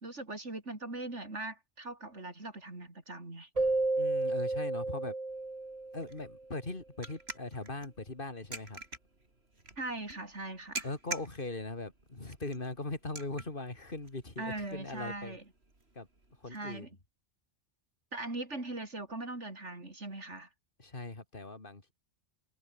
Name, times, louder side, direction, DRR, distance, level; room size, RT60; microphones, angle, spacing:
voice 1, 0.0-3.5 9.8-10.9 14.4-15.4 16.5-16.9 18.1-20.5, right 2 dB, 80° right, 5.0 m, -40 dB
Keyboard (musical), 3.6-6.3, right 2 dB, 30° right, 2.2 m, -32 dB
voice 2, 4.0-5.1 5.9-8.8 10.8-15.4 16.0-16.1 16.4-16.9 20.8-21.9, left 2 dB, 50° left, 3.5 m, -40 dB
sound 1, 5.3-16.6, right 2 dB, 60° right, 4.5 m, -48 dB
omnidirectional pair, 1.2 m